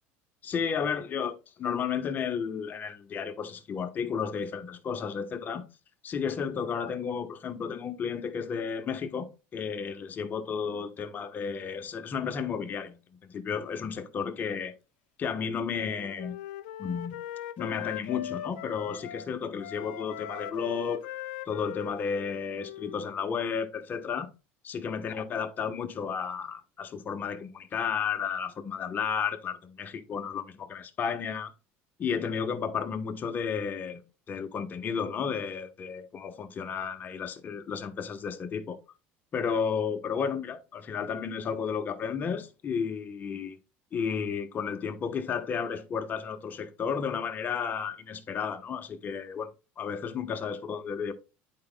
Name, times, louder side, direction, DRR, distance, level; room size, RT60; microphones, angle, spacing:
voice 1, 0.4-5.6 6.0-14.7 15.2-16.4 16.8-17.2 17.6-21.0 21.5-24.3 24.6-31.5 32.0-34.0 34.3-38.8 39.3-43.6 43.9-49.5 49.8-51.1, left 6 dB, 35° left, 1.0 m, -32 dB
Wind instrument woodwind instrument, 15.7-19.3 19.6-23.4, left 11 dB, 90° left, 0.4 m, -40 dB
10.0 x 4.9 x 2.2 m
supercardioid pair, 115°, 6 cm